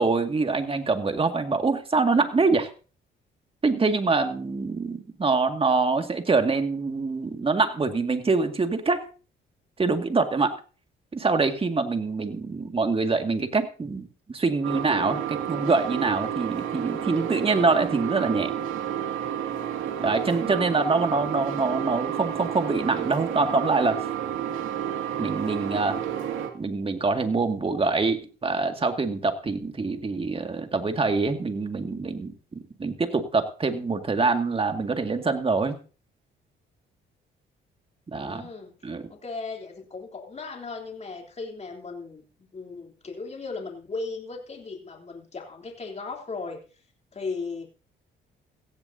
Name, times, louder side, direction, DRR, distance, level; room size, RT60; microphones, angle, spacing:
voice 1, 0.0-2.7 3.6-9.1 9.8-10.5 11.1-18.5 20.0-24.0 25.2-26.0 26.5-32.3 32.8-35.8 38.1-38.5 38.8-39.0, right 4 dB, 30° right, 6 dB, 2.1 m, -25 dB
sound 1, 14.6-26.5, right 9 dB, 85° right, 2.3 m, -31 dB
voice 2, 38.2-38.7 39.1-46.6 47.1-47.7, left 4 dB, 35° left, 2 dB, 3.5 m, -37 dB
17.0 x 15.5 x 2.8 m, 0.36 s
cardioid pair, 90°, 20 cm